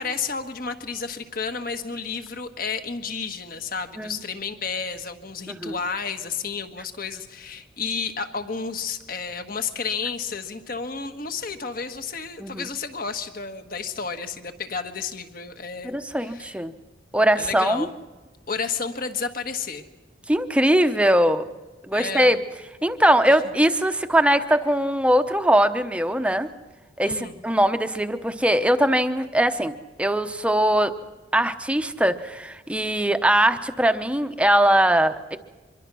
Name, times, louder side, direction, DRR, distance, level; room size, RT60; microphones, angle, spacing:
voice 1, 0.0-16.6 17.3-17.9 18.5-19.8 21.9-22.4 23.3-23.4 27.0-27.4, left 5 dB, 50° left, 7 dB, 1.5 m, -31 dB
voice 2, 15.8-16.7 17.1-17.9 20.3-21.4 21.9-22.4 22.8-26.5 27.0-29.7 30.0-30.9 31.3-35.4, right 1 dB, 5° right, 8 dB, 0.8 m, -21 dB
25.0 x 23.0 x 6.2 m, 1.2 s
head